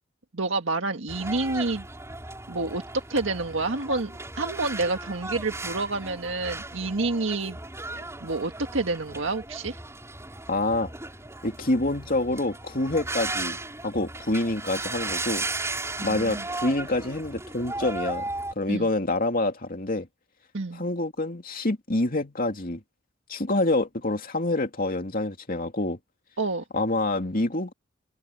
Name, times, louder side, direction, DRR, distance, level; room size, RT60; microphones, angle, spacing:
voice 1, 0.3-1.9 2.5-2.8 3.1-4.1 4.4-7.6 8.2-9.8 16.0-16.4 18.7-18.9 20.5-20.8 26.4-26.6, right 3 dB, 80° right, 1.7 m, -28 dB
sound 1, 1.1-18.5, right 2 dB, 15° right, 6.0 m, -36 dB
voice 2, 10.5-10.9 11.4-13.6 13.8-15.5 16.0-18.2 18.6-20.1 20.7-22.8 23.3-26.0 26.7-27.7, left 2 dB, 45° left, 2.7 m, -27 dB
head